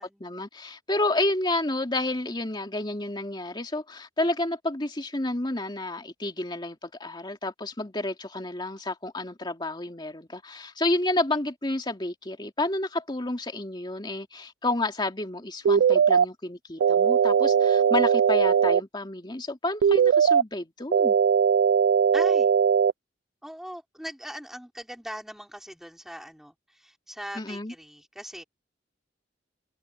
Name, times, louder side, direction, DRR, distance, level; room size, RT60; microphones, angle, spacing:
voice 1, 0.0-21.1 27.4-27.7, left 2 dB, 25° left, 2.6 m, -30 dB
sound 1, 15.7-16.3 16.8-18.8 19.8-20.4 20.9-22.9, right 7 dB, 75° right, 0.3 m, -20 dB
voice 2, 22.1-22.5 23.4-28.4, equal, ahead, 4.9 m, -40 dB
head